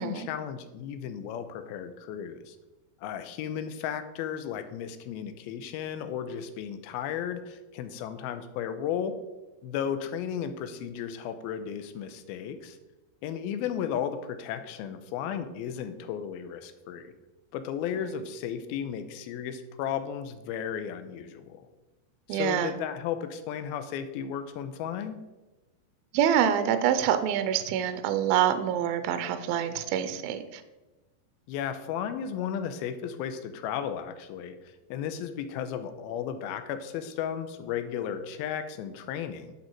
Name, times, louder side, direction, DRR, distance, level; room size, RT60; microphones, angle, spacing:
voice 1, 0.0-2.6 3.0-9.2 9.6-12.8 13.2-17.1 17.5-21.7 22.3-25.2 31.5-39.5, left 8 dB, 80° left, 9 dB, 2.4 m, -34 dB
voice 2, 22.3-22.7 26.1-30.6, right 9 dB, 80° right, 10 dB, 2.3 m, -26 dB
10.5 x 7.2 x 4.6 m, 1.1 s
omnidirectional pair, 4.9 m